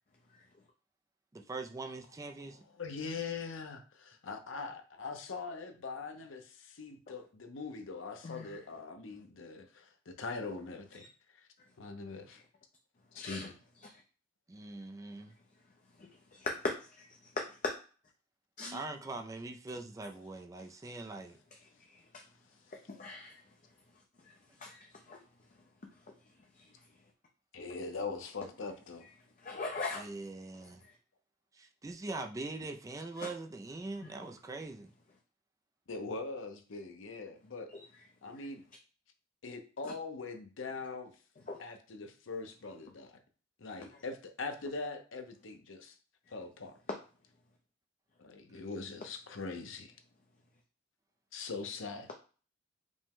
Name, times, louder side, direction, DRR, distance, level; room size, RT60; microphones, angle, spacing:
voice 1, 1.3-2.6 14.5-15.3 18.7-21.4 29.9-30.8 31.5-34.9, right 3 dB, 15° right, 0.3 m, -42 dB
voice 2, 2.8-11.0 11.3-11.4 11.8-12.4 13.1-13.5 27.5-29.1 35.9-37.7 38.2-38.6 39.4-41.1 41.6-43.2 43.6-46.0 46.3-46.8 48.2-49.9 51.3-52.1, left 4 dB, 85° left, 0.7 m, -42 dB
voice 3, 8.2-8.6 13.2-13.5 16.3-17.1 17.4-17.5 18.6-18.8 22.1-22.2 23.0-23.4 24.6-25.2 29.4-30.0 33.2-33.3 34.0-34.1 37.7-37.8 38.4-38.5 39.8-39.9 41.5-41.6, left 3 dB, 40° left, 0.5 m, -39 dB
5.1 x 2.1 x 3.6 m
head